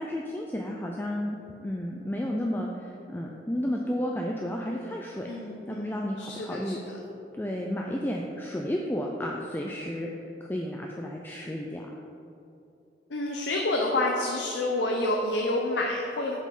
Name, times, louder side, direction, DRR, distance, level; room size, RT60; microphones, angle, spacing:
voice 1, 0.0-1.4 1.6-5.3 5.7-6.8 7.3-10.1 10.4-12.0, equal, 10° left, 0 dB, 0.4 m, -32 dB
voice 2, 5.3-7.0 13.1-16.4, left 2 dB, 85° left, 0 dB, 0.7 m, -29 dB
6.5 x 5.4 x 5.3 m, 2.8 s
head